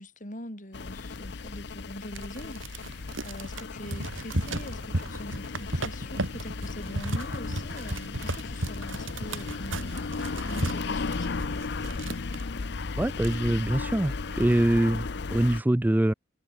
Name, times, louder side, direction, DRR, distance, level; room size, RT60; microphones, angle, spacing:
voice 1, 0.0-11.4, left 1 dB, 40° left, 7.1 m, -43 dB
sound 1, 0.7-15.6, left 4 dB, 55° left, 0.7 m, -35 dB
sound 2, 2.2-12.4 12.9-13.0 13.1-13.8 14.3-14.6, right 1 dB, 75° right, 5.4 m, -35 dB
voice 2, 13.0-16.1, right 1 dB, 10° right, 0.3 m, -24 dB
head